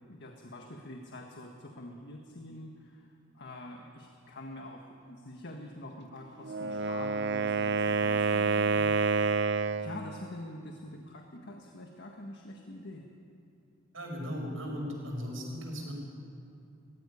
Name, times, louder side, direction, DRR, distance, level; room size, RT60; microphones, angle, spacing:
voice 1, 0.1-3.1 3.3-9.0 9.8-13.1, left 1 dB, 60° left, 2 dB, 1.6 m, -45 dB
Wind instrument woodwind instrument, 6.4-10.0, right 4 dB, 60° right, 0.6 m, -28 dB
voice 2, 13.9-15.9, equal, 85° right, 0 dB, 5.8 m, -37 dB
20.0 x 15.5 x 9.9 m, 2.7 s
head